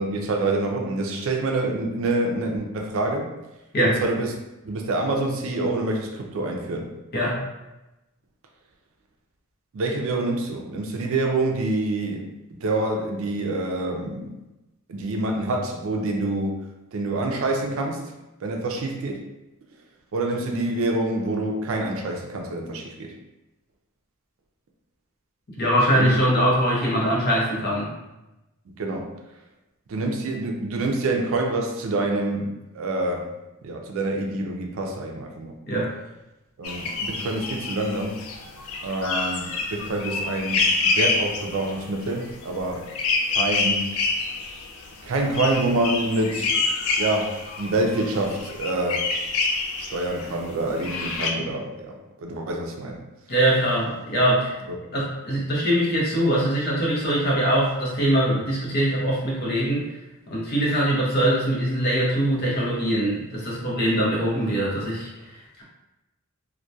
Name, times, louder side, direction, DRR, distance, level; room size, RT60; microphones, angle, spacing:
voice 1, 0.0-3.3 3.8-4.3 4.6-6.9 9.7-14.3 14.9-16.6 16.9-18.0 18.4-19.2 20.1-23.1 25.9-26.1 28.8-29.1 29.9-33.3 33.6-35.5 36.6-38.2 38.8-42.9 43.3-43.9 45.0-46.6 47.0-49.1 49.8-53.0, right 2 dB, 65° right, 2 dB, 0.4 m, -26 dB
voice 2, 25.6-27.9 35.7-35.9 53.3-54.6 54.9-59.8 60.3-65.6, right 1 dB, 45° left, -5 dB, 0.7 m, -22 dB
sound 1, 36.6-50.4 50.8-51.3, left 3 dB, 75° left, 0.3 m, -27 dB
2.6 x 2.1 x 2.2 m, 0.98 s
head